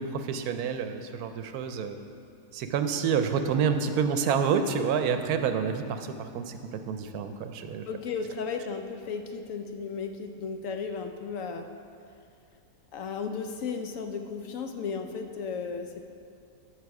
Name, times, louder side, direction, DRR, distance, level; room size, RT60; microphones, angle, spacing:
voice 1, 0.0-2.0 2.5-7.9, right 6 dB, 75° right, 8 dB, 1.1 m, -28 dB
voice 2, 7.9-11.7 12.9-16.1, left 5 dB, 65° left, 6 dB, 0.9 m, -35 dB
13.0 x 6.2 x 4.7 m, 2.4 s
omnidirectional pair, 1.7 m